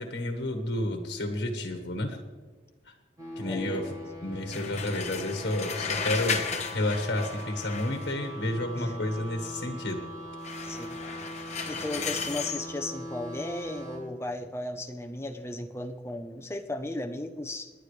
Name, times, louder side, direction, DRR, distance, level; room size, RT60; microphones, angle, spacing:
voice 1, 0.0-2.2 2.9-3.0 3.4-3.9 4.2-6.4 6.7-10.0, left 1 dB, 90° left, 5 dB, 1.5 m, -31 dB
sound 1, 3.2-14.0, equal, 25° right, 4.1 m, -41 dB
voice 2, 3.4-3.9 8.8-9.0 10.6-11.0 11.7-17.7, left 1 dB, 15° left, 6 dB, 0.8 m, -35 dB
sound 2, 4.5-8.2 10.4-12.7, left 6 dB, 40° left, 1.2 m, -34 dB
28.5 x 10.0 x 3.3 m, 1.4 s
head